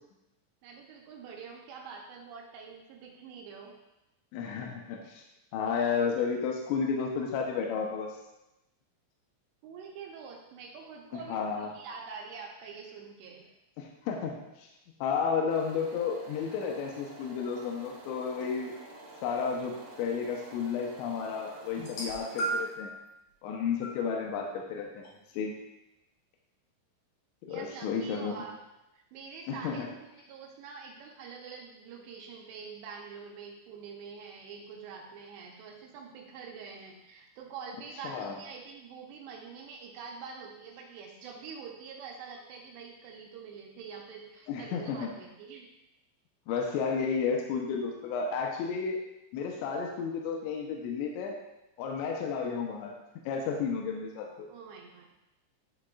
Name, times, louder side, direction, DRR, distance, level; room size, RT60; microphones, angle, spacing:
voice 1, 0.6-3.7 9.6-13.4 27.5-28.5 28.9-29.9 30.2-45.7 54.5-55.1, right 5 dB, 80° right, 0 dB, 2.8 m, -45 dB
voice 2, 4.3-5.2 5.5-8.1 11.3-11.7 13.8-14.7 15.0-18.7 19.2-22.9 23.4-25.1 25.3-25.5 27.4-28.3 29.5-29.9 38.0-38.4 44.5-45.1 46.5-49.0 49.3-51.4 51.8-52.9 53.3-54.5, left 6 dB, 85° left, 0 dB, 2.9 m, -32 dB
sound 1, 15.5-22.6, right 1 dB, 60° right, 2.3 m, -49 dB
sound 2, 21.8-22.9 23.8-24.0 25.0-25.1, right 2 dB, 65° left, 2.0 m, -34 dB
11.0 x 4.2 x 2.3 m, 0.92 s
omnidirectional pair, 5.2 m